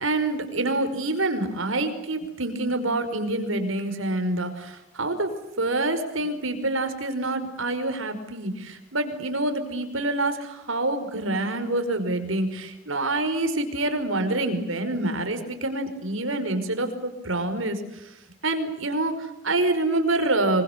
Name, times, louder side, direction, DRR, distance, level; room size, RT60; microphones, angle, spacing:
voice 1, 0.0-5.3 5.6-18.0 18.4-20.6, right 2 dB, 75° right, 8 dB, 5.2 m, -26 dB
26.0 x 24.5 x 8.3 m, 0.89 s
head